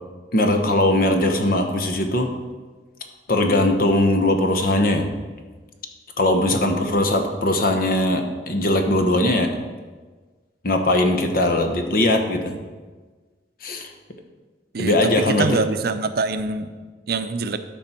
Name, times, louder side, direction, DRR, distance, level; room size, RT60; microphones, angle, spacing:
voice 1, 0.3-2.3 3.3-5.1 6.2-9.5 10.6-12.6 13.6-13.9 14.8-15.6, left 1 dB, 55° left, 5 dB, 1.0 m, -20 dB
voice 2, 14.7-16.7 17.1-17.6, right 4 dB, 60° right, 9 dB, 0.6 m, -24 dB
13.0 x 5.3 x 4.4 m, 1.4 s
head